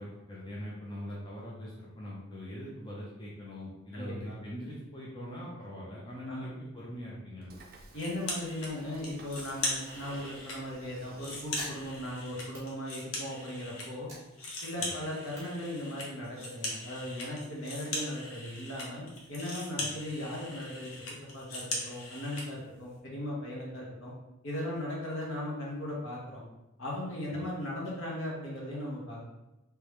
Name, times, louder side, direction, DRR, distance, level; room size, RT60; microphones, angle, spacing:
voice 1, 0.0-7.6 14.8-15.0 19.8-19.9 27.3-27.5, equal, 20° left, -6 dB, 0.6 m, -42 dB
voice 2, 3.9-4.4 6.3-6.5 7.9-14.1 14.6-19.0 19.3-20.9 21.3-24.1 24.4-26.4 26.8-29.3, left 1 dB, 65° left, -4 dB, 1.3 m, -38 dB
Train / Sliding door, 7.4-12.5, right 2 dB, 45° right, 0.4 m, -54 dB
sound 1, 8.0-8.7 9.0-10.6 11.0-13.9 14.1-22.5, left 2 dB, 80° left, 1.0 m, -39 dB
sound 2, 11.5-13.4 13.8-16.4, right 1 dB, 15° right, 1.4 m, -49 dB
3.4 x 3.3 x 3.1 m, 0.98 s
head